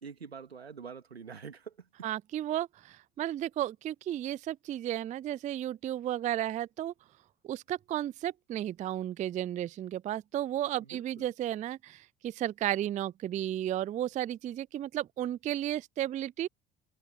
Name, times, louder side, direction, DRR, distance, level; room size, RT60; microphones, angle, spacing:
voice 1, 0.0-2.1 10.8-11.2, right 6 dB, 90° right, 2.6 m, -46 dB
voice 2, 2.0-6.9 7.4-16.5, right 12 dB, 25° right, 0.3 m, -33 dB
figure-of-eight pair, 60°, 30 cm